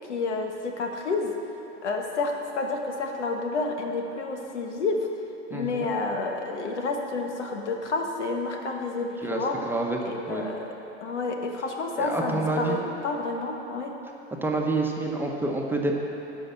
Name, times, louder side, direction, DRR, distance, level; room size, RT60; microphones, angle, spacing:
voice 1, 0.1-1.3 1.8-5.1 5.5-9.6 10.0-10.7 11.0-13.9, left 3 dB, 80° left, 2 dB, 1.3 m, -29 dB
voice 2, 5.5-5.9 9.2-10.0 10.3-10.4 12.0-12.8 14.4-16.0, right 2 dB, 5° right, 0 dB, 1.0 m, -28 dB
11.5 x 5.2 x 7.3 m, 3.0 s
hypercardioid pair, 100°, 34 cm